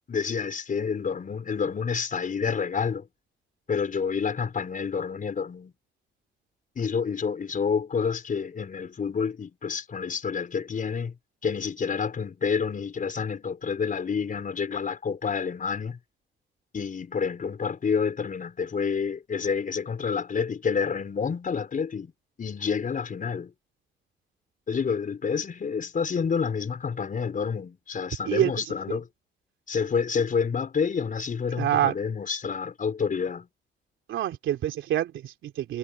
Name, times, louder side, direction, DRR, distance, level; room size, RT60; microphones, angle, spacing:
voice 1, 0.1-3.1 3.7-5.7 6.7-11.1 11.4-16.0 16.7-22.1 22.4-23.5 24.7-29.1 29.7-33.5, left 6 dB, 40° left, 5.0 m, -28 dB
voice 2, 28.2-29.0 31.6-31.9 34.1-35.8, right 11 dB, 75° right, 3.1 m, -27 dB
cardioid pair, 90°, 20 cm